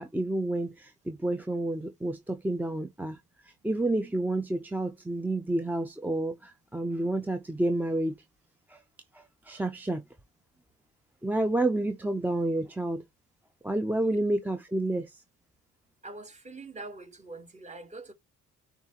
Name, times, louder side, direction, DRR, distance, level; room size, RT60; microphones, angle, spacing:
voice 1, 0.0-3.2 3.6-8.1 8.7-8.8 9.1-10.0 11.2-13.0 13.6-15.2, right 1 dB, 5° right, 0.4 m, -29 dB
voice 2, 16.0-18.1, right 2 dB, 25° right, 1.1 m, -43 dB
7.1 x 2.4 x 2.8 m
cardioid pair, 90°, 30 cm